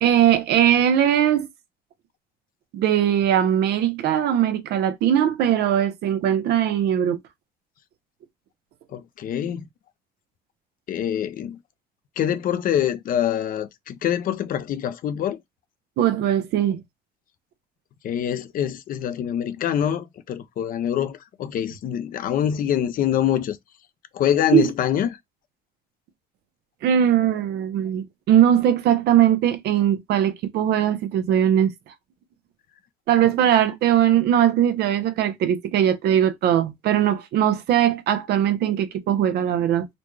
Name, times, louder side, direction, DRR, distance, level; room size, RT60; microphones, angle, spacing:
voice 1, 0.0-1.5 2.7-7.2 16.0-16.8 24.5-24.7 26.8-31.7 33.1-39.9, right 10 dB, 75° right, 0.8 m, -20 dB
voice 2, 8.9-9.6 10.9-11.6 12.2-15.4 18.0-23.6 24.1-25.1, left 10 dB, 55° left, 0.6 m, -25 dB
4.0 x 2.3 x 3.1 m
cardioid pair, 110°, 17 cm